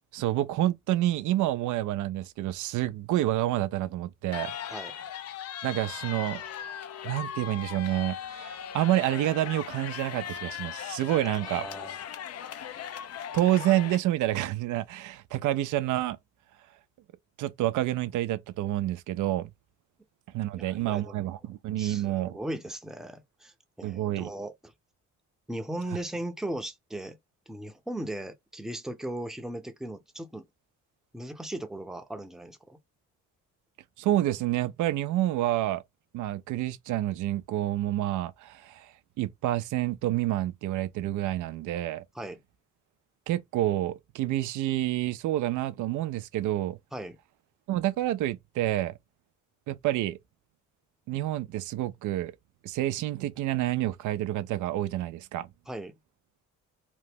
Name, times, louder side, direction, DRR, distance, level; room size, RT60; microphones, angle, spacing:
voice 1, 0.1-4.5 5.6-6.4 7.0-11.7 13.3-16.2 17.4-19.5 20.3-22.4 23.8-24.3 34.0-35.8 36.1-42.0 43.3-46.8 47.7-49.0 49.7-50.2 51.1-52.3 52.6-55.5, right 14 dB, 80° right, 0.5 m, -28 dB
sound 1, 4.3-14.0, left 9 dB, 55° left, 0.5 m, -38 dB
voice 2, 11.3-12.0 20.6-21.2 21.8-24.7 25.5-27.2 27.5-30.5 31.1-32.8 42.1-42.4 46.9-47.2 55.7-55.9, right 1 dB, ahead, 0.6 m, -38 dB
2.9 x 2.1 x 3.3 m
cardioid pair, 90°, 30 cm